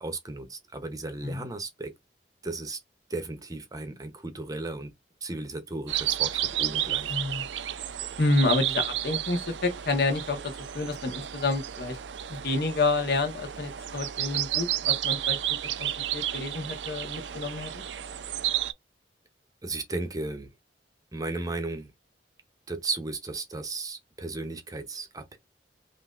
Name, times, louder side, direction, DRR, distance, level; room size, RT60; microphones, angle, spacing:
voice 1, 0.0-1.9 2.4-2.8 3.1-4.9 5.2-7.1 19.6-20.5 21.1-21.9 22.7-25.4, right 2 dB, 20° right, 0.7 m, -35 dB
sound 1, 5.9-18.7, right 12 dB, 85° right, 0.5 m, -32 dB
voice 2, 7.1-7.4 8.2-12.0 12.3-15.4 15.8-17.7, left 3 dB, 60° left, 1.2 m, -28 dB
5.8 x 2.6 x 2.4 m
head